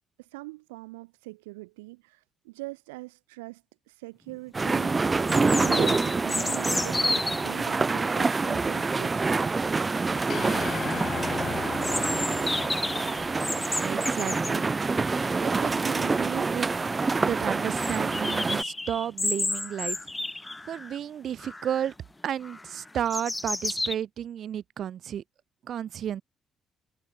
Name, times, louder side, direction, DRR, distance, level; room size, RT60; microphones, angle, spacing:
voice 1, 0.2-4.9 5.6-9.1, right 23 dB, 85° right, 1.4 m, -42 dB
sound 1, 4.3-4.4 5.3-7.5 11.8-14.6 16.2-16.3 16.5-16.6 17.0-17.1 17.8-21.0 21.4-21.9 22.4-23.9, left 2 dB, 20° left, 0.5 m, -31 dB
sound 2, 4.5-18.6, right 4 dB, 30° right, 1.0 m, -27 dB
sound 3, 10.3-14.7, left 8 dB, 55° left, 6.7 m, -37 dB
voice 2, 13.5-14.7 15.4-16.7 17.2-20.0 20.7-21.9 22.2-25.2 25.7-26.2, right 9 dB, 60° right, 2.0 m, -32 dB
hypercardioid pair, 50°, 0 cm